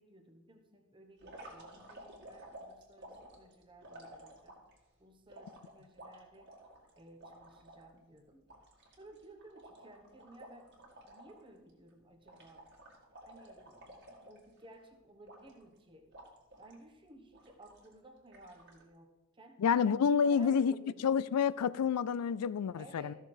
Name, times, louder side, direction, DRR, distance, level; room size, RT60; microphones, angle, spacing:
voice 1, 0.0-4.6 5.0-6.5 7.0-8.5 8.9-12.7 13.3-16.1 16.6-19.9 20.2-21.1 22.7-23.1, right 1 dB, 20° right, 1.1 m, -57 dB
sound 1, 1.2-4.8 5.3-7.8 8.2-8.3 8.5-11.4 11.7-11.9 12.2-14.7 15.2-15.8 16.1-16.8 17.3-17.9 18.3-18.8, right 1 dB, 50° right, 2.1 m, -53 dB
voice 2, 19.6-20.7 21.0-23.1, left 6 dB, 90° left, 0.4 m, -28 dB
14.0 x 6.5 x 4.9 m
head